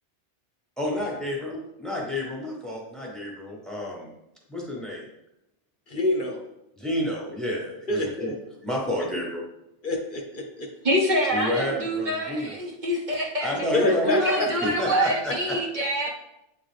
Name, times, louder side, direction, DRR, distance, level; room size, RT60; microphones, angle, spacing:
voice 1, 0.8-4.1 4.5-5.1 6.7-8.3 8.6-9.4 11.3-12.6 13.4-15.6, left 1 dB, ahead, -2 dB, 1.4 m, -30 dB
voice 2, 5.9-6.4 7.9-8.3 9.8-10.7 13.7-14.5, left 1 dB, 50° left, 1 dB, 0.9 m, -26 dB
voice 3, 10.8-13.5 14.1-16.1, equal, 45° right, -1 dB, 1.1 m, -26 dB
8.4 x 3.8 x 3.4 m, 0.85 s
omnidirectional pair, 1.2 m